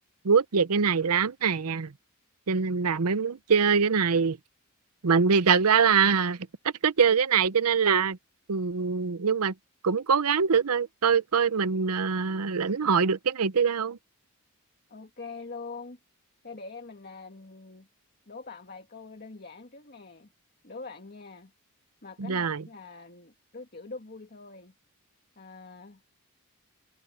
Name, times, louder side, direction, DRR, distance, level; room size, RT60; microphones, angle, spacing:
voice 1, 0.2-1.9 2.5-4.4 5.0-6.4 6.8-8.2 8.5-9.5 9.8-14.0 22.2-22.6, right 6 dB, 80° right, 0.7 m, -23 dB
voice 2, 14.9-16.0 16.4-17.9 18.3-20.3 20.6-21.5 22.0-24.7 25.4-26.0, left 4 dB, 45° left, 2.0 m, -44 dB
head